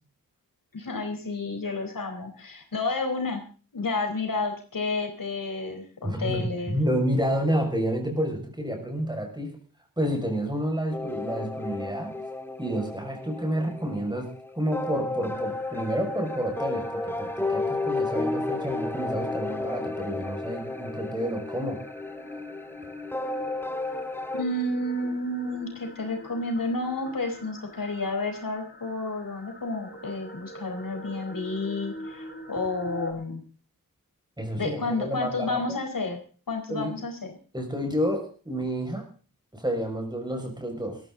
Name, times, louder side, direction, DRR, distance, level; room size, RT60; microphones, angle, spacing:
voice 1, 0.7-3.4 3.7-6.8 24.3-33.4 34.6-36.2 36.5-37.3, left 2 dB, 70° left, 3 dB, 4.5 m, -31 dB
voice 2, 6.0-9.6 10.0-12.2 12.6-14.3 14.5-21.8 34.4-35.6 36.7-36.9 37.5-39.0 39.5-41.0, equal, 10° right, 2 dB, 6.4 m, -29 dB
sound 1, 10.9-24.4, left 2 dB, 5° left, 1.7 m, -32 dB
sound 2, 15.3-33.1, left 1 dB, 30° left, 4.8 m, -44 dB
20.5 x 14.0 x 4.0 m, 0.40 s
wide cardioid pair, 105°, 34 cm